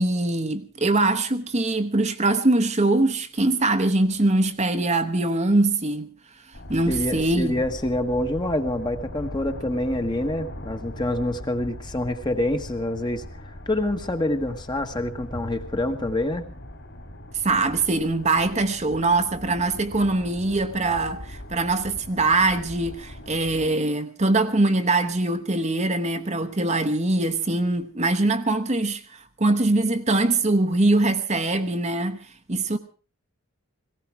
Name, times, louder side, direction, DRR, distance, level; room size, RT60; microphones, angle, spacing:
voice 1, 0.0-6.1 6.7-7.6 17.4-32.2 32.5-32.8, right 2 dB, 30° right, 1.0 m, -22 dB
sound 1, 6.5-23.7, left 1 dB, 55° left, 3.8 m, -40 dB
voice 2, 6.9-16.5, left 1 dB, 20° left, 1.3 m, -26 dB
18.0 x 17.0 x 4.6 m
head